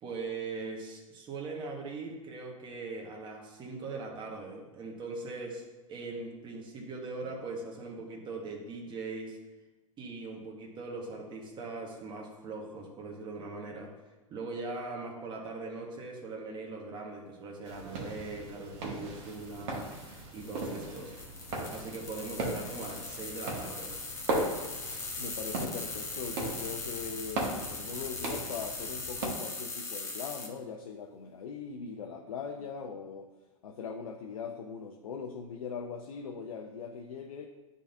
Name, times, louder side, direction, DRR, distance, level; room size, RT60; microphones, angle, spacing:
voice 1, 0.0-5.6 5.9-9.4 10.0-13.9 14.3-19.9 20.3-21.2 21.7-23.9, right 3 dB, 25° right, -1 dB, 1.4 m, -40 dB
sound 1, 17.6-29.3, right 2 dB, 55° right, 1.7 m, -38 dB
sound 2, 19.2-30.5, left 3 dB, 15° left, 1.1 m, -41 dB
voice 2, 25.2-33.3 33.6-37.5, left 6 dB, 75° left, 3 dB, 0.6 m, -40 dB
9.8 x 3.8 x 2.6 m, 1.2 s
hypercardioid pair, 110°, 18 cm